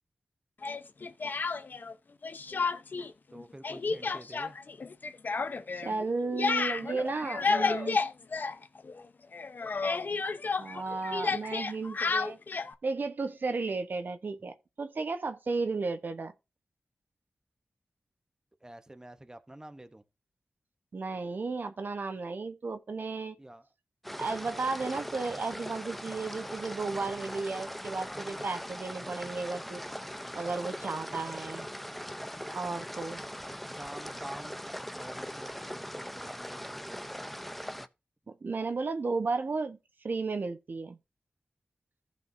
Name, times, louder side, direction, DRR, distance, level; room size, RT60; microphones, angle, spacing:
Speech, 0.6-1.9 2.2-3.1 3.3-9.0 9.3-12.7, left 4 dB, 60° left, 0.8 m, -31 dB
voice 1, 3.3-4.6 18.6-20.0 23.4-23.7 33.8-37.0, right 1 dB, 20° right, 0.9 m, -48 dB
voice 2, 5.7-8.0 10.6-12.4 12.8-16.3 20.9-23.4 24.1-29.8 30.3-31.7 32.5-33.2 38.3-41.0, right 3 dB, 65° right, 1.0 m, -34 dB
sound 1, 24.0-37.9, equal, 5° left, 0.7 m, -40 dB
15.0 x 5.3 x 2.7 m
cardioid pair, 60°, 4 cm